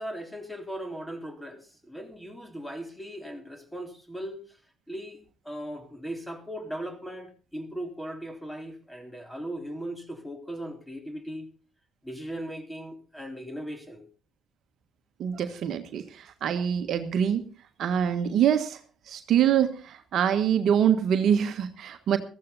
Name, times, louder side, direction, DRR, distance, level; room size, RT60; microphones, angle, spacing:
voice 1, 0.0-4.6 4.9-11.5 12.0-14.1, right 1 dB, 5° left, 6 dB, 3.7 m, -38 dB
voice 2, 15.2-17.4 17.8-18.8 19.1-22.2, right 9 dB, 60° right, 9 dB, 1.3 m, -25 dB
15.0 x 14.5 x 4.1 m, 0.35 s
hypercardioid pair, 50°, 0 cm